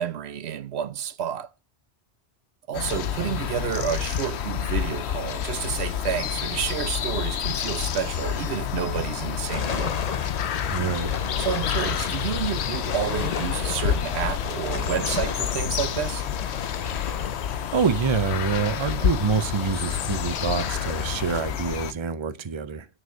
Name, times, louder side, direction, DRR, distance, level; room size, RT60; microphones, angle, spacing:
voice 1, 0.0-1.5 2.7-10.0 11.4-16.3, right 9 dB, 80° right, 1.0 m, -30 dB
sound 1, 2.7-21.9, left 9 dB, 90° left, 1.0 m, -29 dB
sound 2, 9.5-21.4, left 6 dB, 45° left, 0.7 m, -33 dB
voice 2, 10.7-11.1 17.7-22.9, right 6 dB, 30° right, 0.7 m, -26 dB
9.2 x 6.6 x 6.3 m
omnidirectional pair, 1.1 m